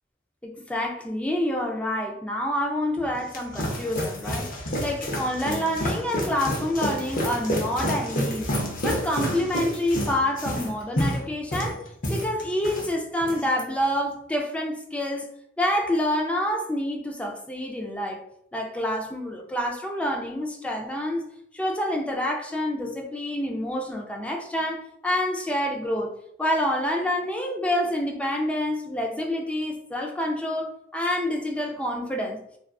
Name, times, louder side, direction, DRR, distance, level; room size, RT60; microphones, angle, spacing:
voice 1, 0.4-8.5 8.8-11.8 12.1-15.3 15.6-18.2 18.5-21.3 21.5-26.1 26.4-32.4, left 1 dB, 5° left, 1 dB, 0.3 m, -27 dB
sound 1, 3.0-12.9 13.2-13.6, equal, 45° left, 0.6 m, -29 dB
2.4 x 2.4 x 2.2 m, 0.72 s
head